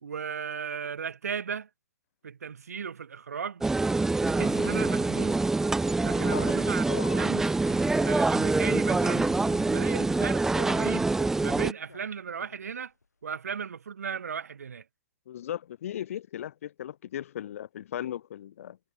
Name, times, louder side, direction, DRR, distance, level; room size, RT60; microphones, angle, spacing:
voice 1, 0.0-1.7 2.2-3.7 4.2-5.4 6.0-6.8 7.2-9.3 9.7-11.1 11.4-12.9 13.2-14.8, right 6 dB, 70° right, 2.2 m, -36 dB
sound 1, 3.6-11.7, right 3 dB, 5° right, 0.3 m, -25 dB
sound 2, 4.2-12.7 13.0-13.1, left 4 dB, 85° left, 1.4 m, -49 dB
voice 2, 6.2-6.5 6.9-7.3 15.3-18.8, left 11 dB, 60° left, 0.8 m, -37 dB
figure-of-eight pair, 120°, 9 cm